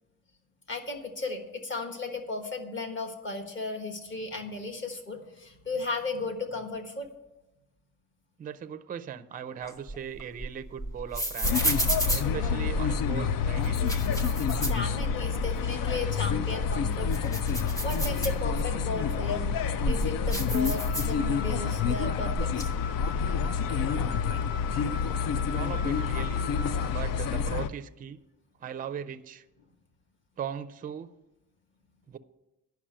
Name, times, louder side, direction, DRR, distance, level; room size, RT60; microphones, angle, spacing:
voice 1, 0.7-7.1 14.6-19.5 19.9-22.7, left 2 dB, 35° left, 4 dB, 1.4 m, -35 dB
voice 2, 8.4-11.7 12.1-14.0 25.5-26.4 26.8-28.2 28.6-29.4 30.4-31.1 32.1-32.2, right 8 dB, 25° right, 10 dB, 0.4 m, -38 dB
sound 1, 9.6-13.1 13.6-15.5 15.8-15.9 16.4-18.8 19.4-21.6 21.8-22.6, right 1 dB, 10° left, 0.9 m, -32 dB
sound 2, 11.4-27.7, left 6 dB, 80° left, 0.6 m, -28 dB
Wind instrument woodwind instrument, 20.9-27.1, left 7 dB, 50° left, 1.6 m, -41 dB
10.0 x 5.9 x 8.6 m, 0.96 s
cardioid pair, 155°, 33 cm